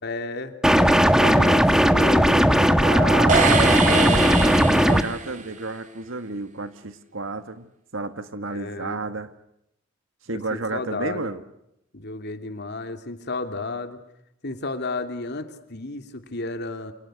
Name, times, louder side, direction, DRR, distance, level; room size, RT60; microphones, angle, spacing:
voice 1, 0.0-3.2 3.5-4.3 8.4-9.0 10.3-11.3 11.9-14.0 14.4-16.9, left 2 dB, 55° left, 7 dB, 3.0 m, -33 dB
sound 1, 0.6-5.0, equal, 5° right, 1.4 m, -17 dB
voice 2, 2.8-9.3 10.2-11.4, right 3 dB, 70° right, 9 dB, 1.7 m, -31 dB
sound 2, 3.3-5.5, right 5 dB, 40° right, 3.1 m, -24 dB
29.0 x 29.0 x 6.4 m, 0.80 s
head